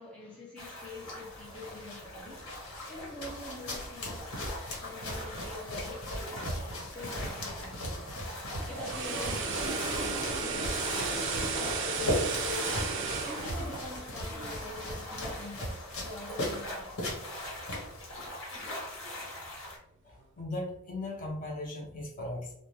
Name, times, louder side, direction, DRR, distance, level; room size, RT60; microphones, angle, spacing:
voice 1, 0.0-2.5 2.9-4.4 4.8-8.2 8.7-12.6 13.2-17.3, left 1 dB, 5° left, 0.4 m, -46 dB
sound 1, 0.6-19.8, left 1 dB, 60° left, 0.9 m, -42 dB
sound 2, 1.3-18.3, equal, 80° left, 1.3 m, -38 dB
sound 3, 8.5-14.7 15.0-15.2, right 4 dB, 55° right, 0.4 m, -34 dB
voice 2, 20.0-22.5, left 1 dB, 40° left, 0.7 m, -38 dB
2.5 x 2.1 x 3.1 m
head